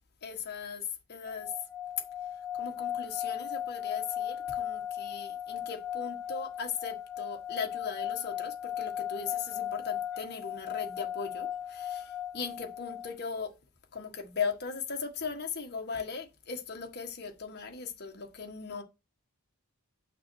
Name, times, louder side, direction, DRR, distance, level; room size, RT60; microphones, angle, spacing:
voice 1, 0.2-1.5 2.5-13.5 13.9-18.8, left 5 dB, 45° left, 1.5 m, -38 dB
sound 1, 1.3-13.2, left 10 dB, ahead, 3.0 m, -37 dB
8.6 x 5.9 x 4.7 m
head